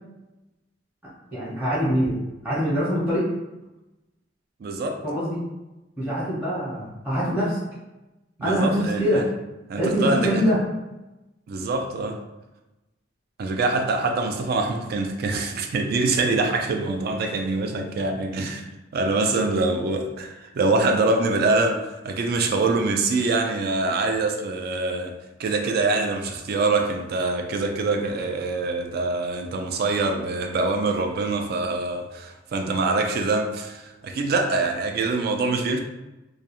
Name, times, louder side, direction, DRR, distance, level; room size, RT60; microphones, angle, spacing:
voice 1, 1.3-2.2 2.4-3.3 5.0-5.4 6.0-7.6 8.4-9.2 9.8-10.6, equal, 5° right, -11 dB, 0.7 m, -24 dB
voice 2, 4.6-5.0 8.4-9.2 9.7-10.5 11.5-12.2 13.4-18.7 18.9-21.8 22.0-25.1 25.4-35.8, right 3 dB, 55° right, 4 dB, 0.3 m, -24 dB
2.3 x 2.3 x 2.8 m, 1.0 s
head